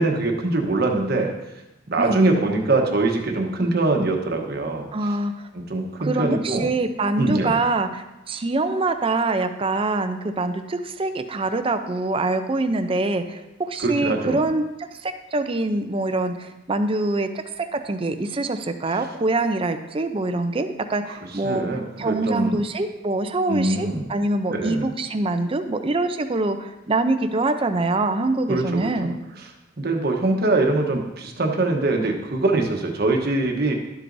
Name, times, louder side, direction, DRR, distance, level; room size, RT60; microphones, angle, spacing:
voice 1, 0.0-1.3 1.9-4.9 5.5-6.7 7.2-7.6 13.8-14.4 21.0-21.1 21.4-22.6 23.5-24.0 24.5-24.9 28.5-28.9 29.8-33.7, right 2 dB, 55° right, 2 dB, 1.1 m, -23 dB
voice 2, 2.0-2.3 4.9-5.3 6.0-14.6 15.0-21.6 22.0-29.2, right 2 dB, 30° right, 8 dB, 0.5 m, -24 dB
12.0 x 7.7 x 2.6 m, 0.97 s
head